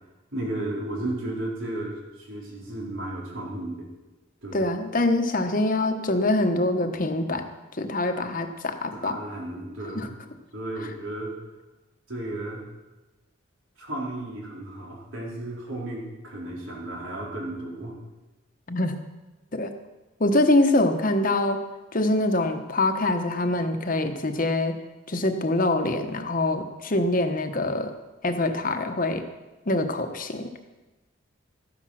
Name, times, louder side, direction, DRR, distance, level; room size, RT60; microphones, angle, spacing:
voice 1, 0.3-3.9 4.4-4.6 8.9-10.1 10.5-11.4 12.1-12.6 13.8-18.0, right 1 dB, 80° right, -3 dB, 4.0 m, -34 dB
voice 2, 4.5-7.4 7.8-9.2 9.9-10.1 18.7-19.0 19.5-19.7 20.2-21.6 21.9-24.7 25.1-27.9 28.2-29.2 29.7-30.5, left 2 dB, 45° left, 7 dB, 1.0 m, -24 dB
13.5 x 10.0 x 6.4 m, 1.1 s
head